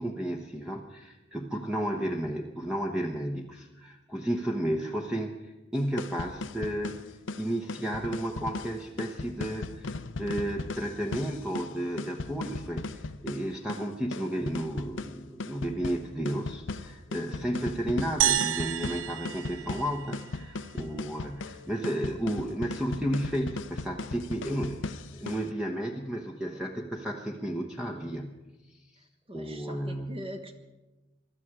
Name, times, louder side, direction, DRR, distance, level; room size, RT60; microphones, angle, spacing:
voice 1, 0.0-7.0 7.4-28.3 28.7-28.8 29.3-30.3, right 1 dB, 5° right, 0 dB, 1.0 m, -33 dB
sound 1, 5.8-25.5, left 3 dB, 85° left, 0.7 m, -38 dB
sound 2, 18.2-20.6, right 10 dB, 80° right, 0.6 m, -30 dB
voice 2, 29.3-30.6, equal, 30° right, 5 dB, 1.4 m, -42 dB
23.5 x 12.5 x 4.8 m, 1.1 s
head